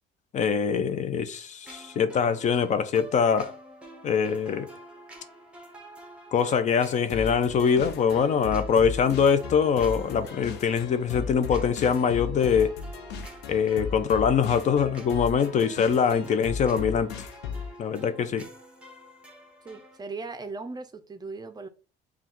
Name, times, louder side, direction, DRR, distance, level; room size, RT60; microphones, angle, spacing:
voice 1, 0.3-3.6 4.0-4.7 6.3-12.8 13.5-17.3 17.8-18.5, left 7 dB, 45° left, 0.5 m, -23 dB
sound 1, 1.6-20.0, right 1 dB, 5° right, 0.9 m, -48 dB
sound 2, 7.1-17.8, left 6 dB, 90° left, 0.6 m, -36 dB
voice 2, 19.6-21.7, right 3 dB, 25° right, 0.5 m, -38 dB
5.5 x 2.3 x 3.0 m
cardioid pair, 110°, 17 cm